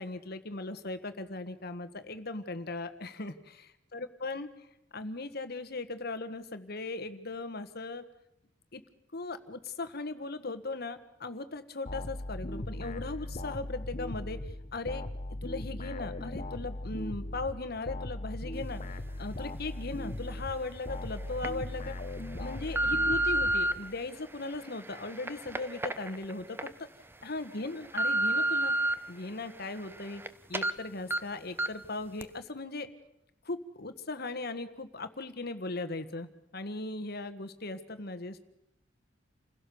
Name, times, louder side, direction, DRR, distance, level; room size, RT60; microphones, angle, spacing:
voice 1, 0.0-4.7 4.9-8.0 8.7-8.8 9.1-15.0 15.4-18.8 19.2-22.0 22.4-26.9 27.2-28.7 29.1-30.2 30.5-32.9 33.4-38.4, left 3 dB, 55° left, 10 dB, 1.5 m, -38 dB
sound 1, 11.9-24.1, left 1 dB, 35° left, 1.1 m, -39 dB
sound 2, 20.4-20.5 21.2-21.5 22.1-23.7 24.4-26.7 27.1-27.2 27.6-28.9 29.4-30.3 30.5-30.7 31.1-31.2 31.6-31.9 32.2-32.3, right 1 dB, 10° right, 0.8 m, -30 dB
28.5 x 16.5 x 7.0 m, 0.85 s
head